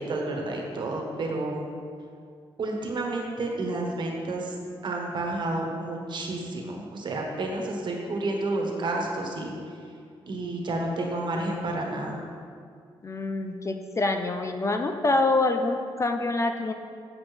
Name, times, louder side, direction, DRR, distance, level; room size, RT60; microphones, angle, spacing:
voice 1, 0.0-1.6 2.6-4.5 4.8-9.5 10.3-12.2, right 2 dB, 50° right, 0 dB, 1.4 m, -30 dB
voice 2, 13.0-16.7, left 2 dB, 30° left, 6 dB, 0.5 m, -26 dB
7.9 x 7.1 x 3.4 m, 2.2 s
cardioid pair, 90°, 10 cm